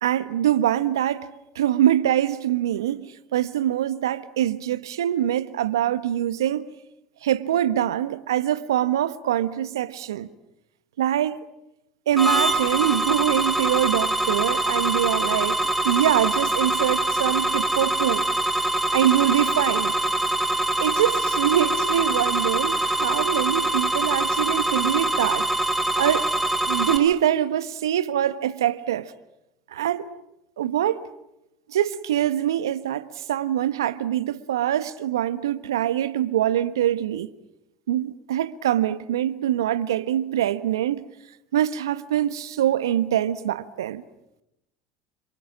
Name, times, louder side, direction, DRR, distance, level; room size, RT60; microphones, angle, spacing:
voice 1, 0.0-6.7 7.2-10.3 11.0-11.4 12.1-15.6 15.8-18.3 18.9-19.9 20.8-25.5 25.9-26.3 26.7-29.1 29.7-30.1 30.6-31.0 31.7-37.3 37.9-41.0 41.5-44.0, right 11 dB, 80° right, 1.3 m, -24 dB
sound 1, 12.2-27.0, right 2 dB, ahead, 5.3 m, -24 dB
29.0 x 26.5 x 7.3 m
hypercardioid pair, 75°, 2 cm